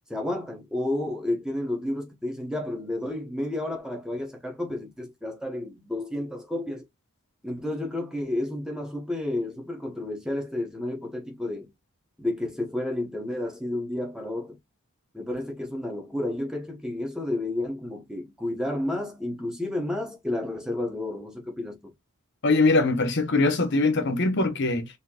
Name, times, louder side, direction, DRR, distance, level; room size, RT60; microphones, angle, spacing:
voice 1, 0.1-6.8 7.4-11.7 12.2-14.6 15.1-21.9, left 1 dB, 5° right, 0.9 m, -31 dB
voice 2, 22.4-24.9, left 3 dB, 55° left, 0.9 m, -22 dB
4.2 x 2.8 x 2.8 m
head